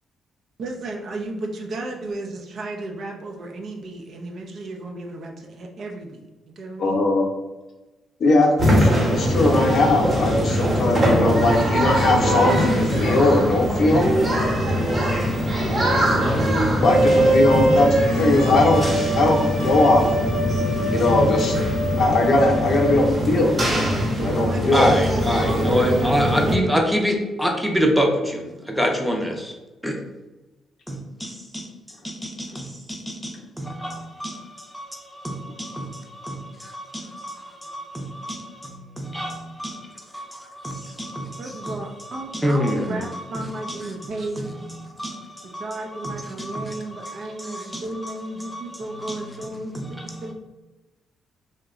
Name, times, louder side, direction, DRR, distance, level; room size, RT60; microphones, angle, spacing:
voice 1, 0.6-7.1 23.4-26.7 41.4-44.6 45.4-50.3, right 2 dB, 60° right, 0.6 m, -33 dB
voice 2, 6.8-7.3 8.2-14.1 16.8-17.9 18.2-18.8 19.1-20.0 20.9-21.5 22.0-23.8 24.2-24.9, left 2 dB, 55° left, 0.6 m, -19 dB
sound 1, 8.6-26.5, equal, 30° right, 1.1 m, -22 dB
sound 2, 16.8-23.0, right 1 dB, 75° right, 1.0 m, -24 dB
voice 3, 24.7-29.5 29.8-30.0 30.9-31.7 32.0-39.9 40.1-40.2 41.0-50.3, equal, ahead, 0.6 m, -27 dB
2.9 x 2.2 x 3.6 m
cardioid pair, 90°, 0 cm